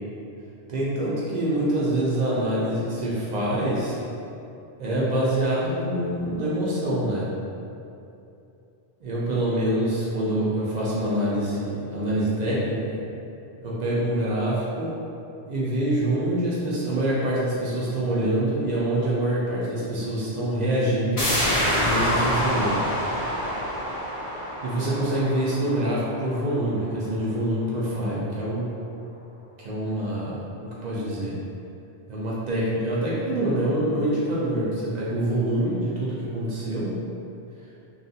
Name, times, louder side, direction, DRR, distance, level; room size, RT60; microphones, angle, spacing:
voice 1, 0.7-4.0 4.8-7.3 9.0-13.0 13.6-14.9 15.5-21.3 21.7-22.8 24.6-28.7 29.6-30.4 30.8-31.4 32.1-36.9, right 1 dB, 60° right, -7 dB, 0.5 m, -25 dB
sound 1, 21.2-26.6 27.0-27.1, equal, 50° left, 0.5 m, -26 dB
2.7 x 2.4 x 2.6 m, 2.7 s
omnidirectional pair, 1.1 m